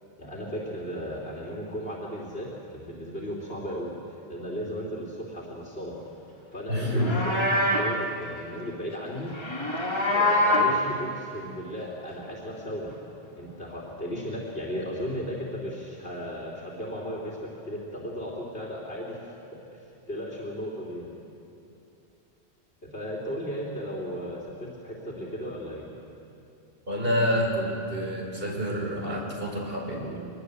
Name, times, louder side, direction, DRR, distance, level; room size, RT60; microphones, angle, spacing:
voice 1, 0.2-6.0 6.5-7.1 7.4-9.3 10.1-12.9 13.4-19.2 19.5-19.8 20.1-21.1 22.8-25.9, equal, 65° left, -3 dB, 3.3 m, -35 dB
voice 2, 6.7-7.2 26.9-30.2, equal, 60° right, -1 dB, 4.6 m, -28 dB
Livestock farm animals working animals, 6.8-8.0 9.3-10.8, left 1 dB, 25° left, 2.7 m, -24 dB
23.5 x 21.5 x 8.1 m, 2.7 s
omnidirectional pair, 1.1 m